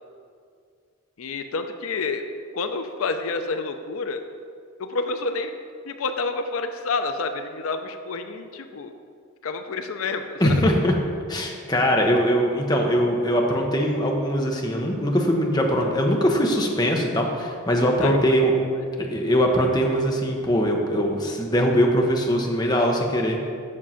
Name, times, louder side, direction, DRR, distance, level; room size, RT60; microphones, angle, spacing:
voice 1, 1.2-2.3 2.5-4.2 4.8-5.6 5.9-8.9 9.4-10.6 18.0-18.4 18.8-18.9, left 3 dB, 80° left, 8 dB, 0.5 m, -29 dB
voice 2, 10.4-10.9 11.3-18.5 19.0-23.4, equal, 20° left, 0 dB, 0.9 m, -21 dB
7.5 x 6.5 x 5.7 m, 2.3 s
head